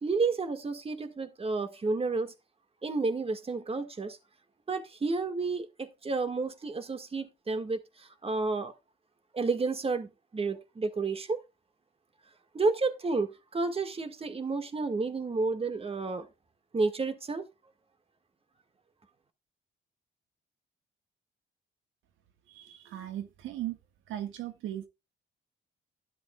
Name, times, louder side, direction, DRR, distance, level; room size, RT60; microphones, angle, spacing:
voice 1, 0.0-2.3 2.8-4.2 4.7-8.7 9.3-11.4 12.5-16.3 16.7-17.5, right 3 dB, 30° right, 1.8 m, -31 dB
voice 2, 22.5-23.8 24.1-24.9, right 12 dB, 85° right, 1.6 m, -37 dB
12.5 x 11.0 x 2.4 m
cardioid pair, 90°, 20 cm